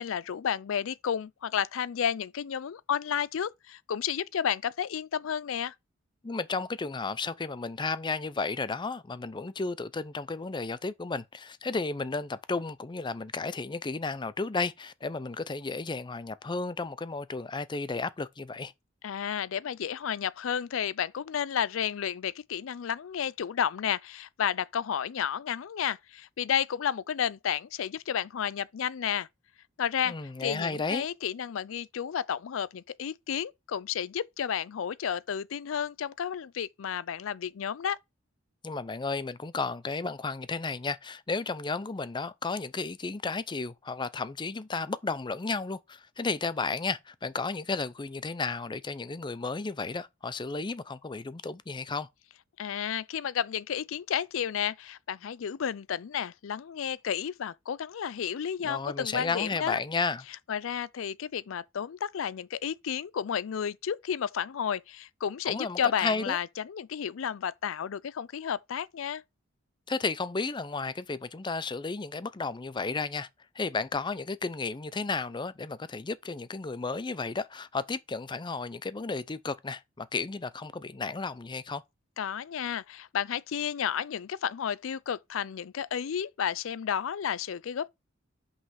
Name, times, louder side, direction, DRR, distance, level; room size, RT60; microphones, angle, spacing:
voice 1, 0.0-5.7 19.0-29.3 29.8-30.1 30.4-38.0 52.6-59.8 60.5-69.2 82.2-87.9, left 8 dB, 75° left, 0.4 m, -32 dB
voice 2, 6.2-18.7 30.1-31.1 38.6-52.1 58.6-60.3 65.4-66.4 69.9-73.3 73.6-81.8, left 4 dB, 25° left, 0.5 m, -33 dB
5.6 x 5.6 x 5.7 m
head